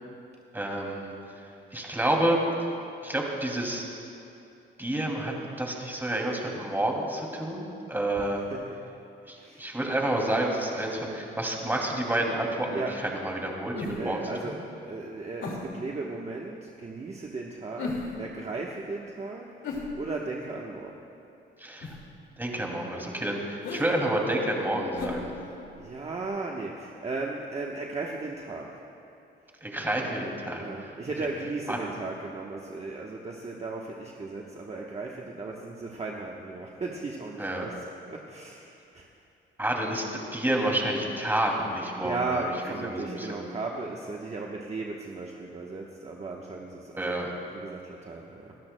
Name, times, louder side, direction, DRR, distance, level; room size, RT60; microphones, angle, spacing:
voice 1, 0.5-1.1 1.7-2.4 3.0-3.8 4.8-8.4 9.3-12.8 13.2-14.6 21.6-21.9 22.4-25.3 29.6-30.6 31.7-31.8 37.4-37.7 39.6-42.5 42.8-43.5 47.0-47.3, right 1 dB, 10° right, 0 dB, 2.6 m, -29 dB
voice 2, 8.1-8.8 9.4-9.6 12.7-13.0 13.9-20.9 25.8-28.7 30.6-39.1 42.0-47.2 47.5-48.5, right 3 dB, 35° right, -1 dB, 1.1 m, -36 dB
sound 1, 13.7-14.2 15.4-15.8 17.8-18.3 19.6-20.4 21.8-22.1 23.6-23.9 24.9-25.9 26.2-26.3, left 3 dB, 80° left, 2.2 m, -36 dB
27.5 x 13.0 x 2.2 m, 2.8 s
cardioid pair, 90°, 20 cm